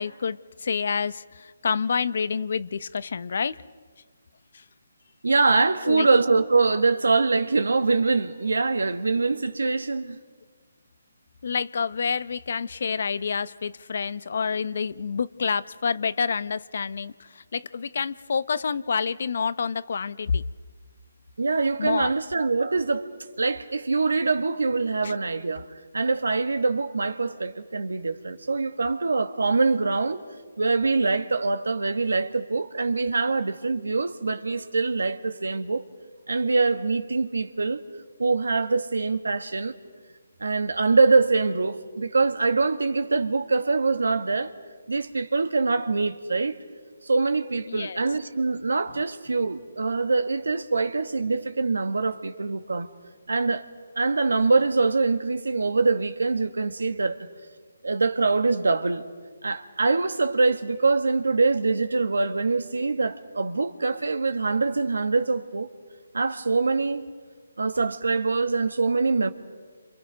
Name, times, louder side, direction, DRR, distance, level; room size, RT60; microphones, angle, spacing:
voice 1, 0.0-3.6 4.5-4.6 5.9-6.1 11.4-20.4 21.8-22.1 25.0-25.1 47.7-48.0, left 5 dB, 60° left, 0.8 m, -28 dB
voice 2, 5.2-10.2 21.4-23.1 23.4-25.7 25.9-30.2 30.6-35.8 36.3-37.8 38.2-39.7 40.4-44.5 44.9-46.6 47.0-52.9 53.3-53.7 53.9-57.2 57.8-59.0 59.4-65.7 66.1-67.0 67.6-69.3, right 3 dB, 85° right, 1.6 m, -24 dB
29.5 x 27.0 x 5.2 m
hypercardioid pair, 160°, 0 cm